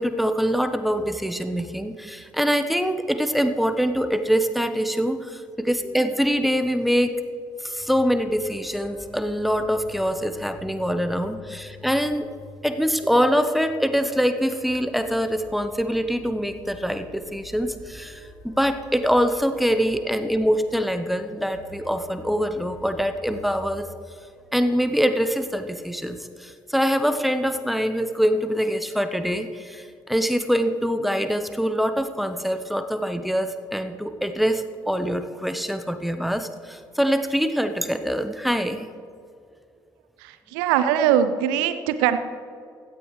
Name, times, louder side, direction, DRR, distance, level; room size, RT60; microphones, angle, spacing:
voice 1, 0.0-7.1 7.6-12.3 12.6-18.2 18.4-23.8 24.5-38.9, equal, ahead, 9 dB, 1.0 m, -24 dB
sound 1, 7.8-23.8, left 3 dB, 65° left, 3.7 m, -47 dB
voice 2, 40.2-42.2, right 10 dB, 70° right, 11 dB, 0.7 m, -21 dB
16.0 x 12.5 x 3.3 m, 2.4 s
figure-of-eight pair, 45°, 12 cm